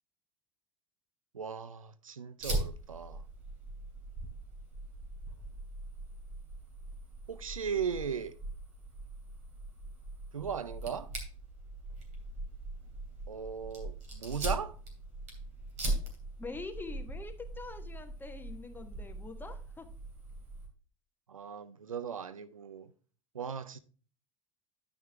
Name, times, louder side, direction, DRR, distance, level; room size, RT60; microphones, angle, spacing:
voice 1, 1.3-3.2 7.3-8.4 10.3-11.1 13.3-14.8 21.3-22.9 23.3-23.8, right 7 dB, 85° right, 0.5 m, -37 dB
Fire, 2.4-20.7, right 2 dB, 40° right, 2.9 m, -41 dB
voice 2, 16.4-19.9, left 3 dB, 10° left, 1.1 m, -44 dB
10.0 x 6.1 x 3.3 m
figure-of-eight pair, 75°, 17 cm